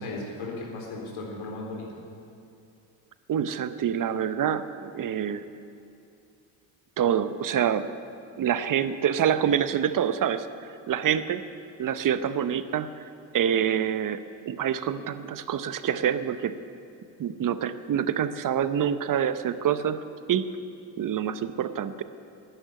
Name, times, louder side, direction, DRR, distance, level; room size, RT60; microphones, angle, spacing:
voice 1, 0.0-2.0, left 2 dB, 70° left, -2 dB, 3.9 m, -36 dB
voice 2, 3.3-5.5 7.0-7.9 8.4-10.5 10.9-11.4 11.8-13.1 13.3-14.2 14.5-16.6 17.2-20.0 20.3-20.5 21.0-22.0, right 9 dB, 40° right, 12 dB, 0.8 m, -26 dB
11.0 x 10.0 x 9.4 m, 2.6 s
supercardioid pair, 75°, 49 cm